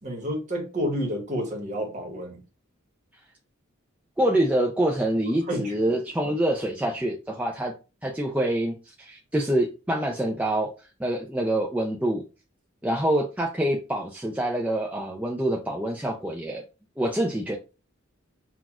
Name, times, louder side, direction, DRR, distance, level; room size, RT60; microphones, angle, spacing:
voice 1, 0.0-2.4 5.3-5.9 6.2-6.3, equal, 35° right, 1.1 m, -30 dB
voice 2, 4.2-7.7 8.0-10.7 11.0-12.2 12.8-16.6 17.0-17.6, right 1 dB, 5° right, 0.4 m, -26 dB
5.9 x 2.4 x 2.3 m
head